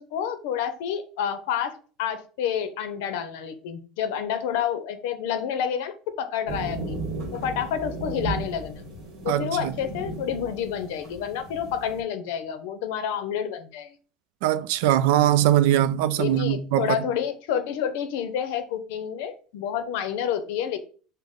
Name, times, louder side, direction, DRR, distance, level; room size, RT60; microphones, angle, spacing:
voice 1, 0.0-7.0 7.3-8.8 9.2-13.9 16.2-20.8, left 8 dB, 75° left, 0.6 m, -29 dB
sound 1, 6.5-12.0, right 2 dB, 50° right, 1.3 m, -35 dB
voice 2, 9.3-9.7 14.4-17.0, right 12 dB, 75° right, 0.3 m, -21 dB
5.2 x 2.1 x 3.6 m
cardioid pair, 175°, 0 cm